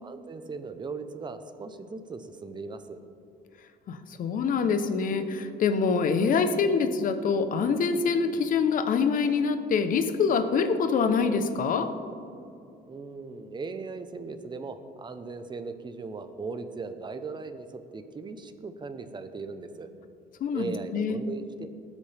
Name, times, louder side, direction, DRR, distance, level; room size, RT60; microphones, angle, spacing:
voice 1, 0.0-3.0 12.9-19.9 20.5-21.7, right 4 dB, 25° right, 9 dB, 0.9 m, -38 dB
voice 2, 3.9-11.9 20.4-21.2, left 5 dB, 55° left, 9 dB, 1.0 m, -25 dB
19.0 x 8.4 x 3.5 m, 2.6 s
cardioid pair, 110°, 17 cm